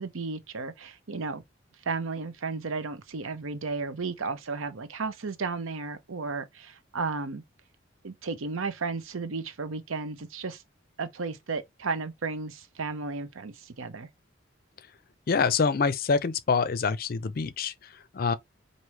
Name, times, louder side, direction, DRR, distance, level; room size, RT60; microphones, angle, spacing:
voice 1, 0.0-1.4 1.8-7.4 8.0-10.6 11.0-14.1, right 4 dB, 90° right, 0.7 m, -34 dB
voice 2, 15.3-18.3, left 5 dB, 45° left, 0.4 m, -26 dB
4.7 x 2.7 x 2.9 m
head